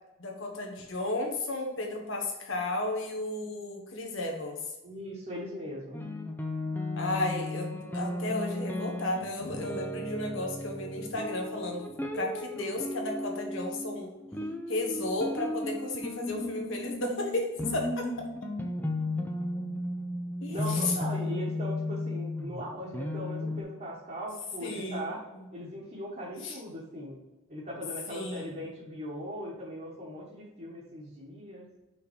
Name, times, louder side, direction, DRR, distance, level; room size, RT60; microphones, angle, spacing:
voice 1, 0.2-4.6 7.0-7.7 7.9-11.9 12.1-14.1 14.7-18.3 20.4-20.9 24.6-25.4 26.4-26.6 28.1-28.6, left 2 dB, 65° left, 2 dB, 1.4 m, -33 dB
voice 2, 4.8-6.0 20.5-25.2 25.5-27.2 27.5-31.7, equal, 40° right, -6 dB, 1.4 m, -39 dB
sound 1, 5.9-23.6, left 1 dB, 10° left, 0.6 m, -35 dB
5.5 x 4.0 x 5.0 m, 1.0 s
head